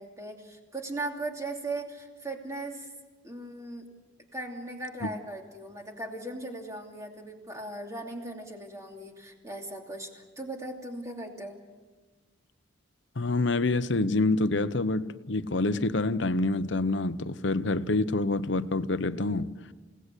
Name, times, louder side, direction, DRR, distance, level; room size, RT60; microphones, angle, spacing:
voice 1, 0.0-2.9 3.2-3.9 4.3-11.6, right 2 dB, 15° right, 2.8 m, -38 dB
voice 2, 13.2-19.5, left 2 dB, 65° left, 0.9 m, -27 dB
29.0 x 18.0 x 8.4 m
head